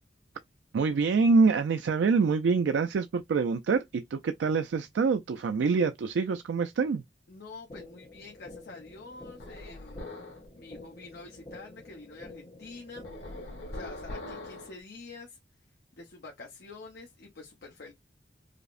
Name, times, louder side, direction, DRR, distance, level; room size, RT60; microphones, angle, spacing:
voice 1, 0.7-7.0, right 4 dB, 70° right, 0.3 m, -25 dB
voice 2, 7.3-13.1 13.7-15.4 15.9-17.9, left 3 dB, 60° left, 0.8 m, -47 dB
sound 1, 7.7-13.7, left 2 dB, 25° left, 0.6 m, -49 dB
sound 2, 9.4-10.5 13.0-14.8, left 1 dB, 90° left, 1.3 m, -41 dB
4.9 x 2.0 x 2.4 m
head